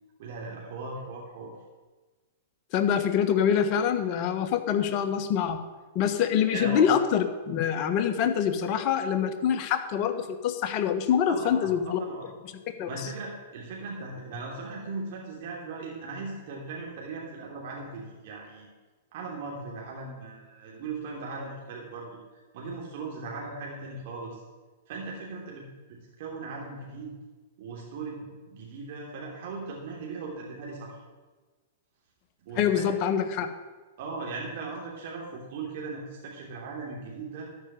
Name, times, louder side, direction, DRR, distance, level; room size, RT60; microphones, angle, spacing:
voice 1, 0.2-1.5 6.5-6.8 11.3-12.2 12.9-18.7 19.1-24.4 24.9-25.6 25.9-27.1 27.6-31.0 32.4-32.9 34.0-37.5, right 3 dB, 60° right, -2 dB, 3.1 m, -38 dB
voice 2, 2.7-5.6 5.9-12.0 12.8-12.9 32.6-33.5, left 8 dB, 45° left, 8 dB, 1.4 m, -25 dB
13.5 x 6.1 x 9.9 m, 1.3 s
hypercardioid pair, 110°, 0 cm